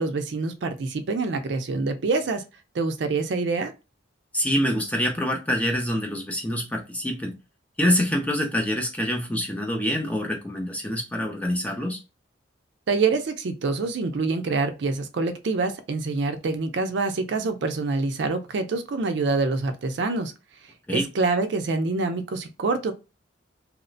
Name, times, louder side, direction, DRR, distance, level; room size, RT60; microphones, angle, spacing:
voice 1, 0.0-2.4 2.7-3.7 12.9-20.3 20.9-22.9, right 3 dB, 60° right, 0.4 m, -26 dB
voice 2, 4.3-7.4 7.8-12.0 20.9-21.1, equal, 5° left, 0.4 m, -26 dB
2.9 x 2.1 x 2.5 m
head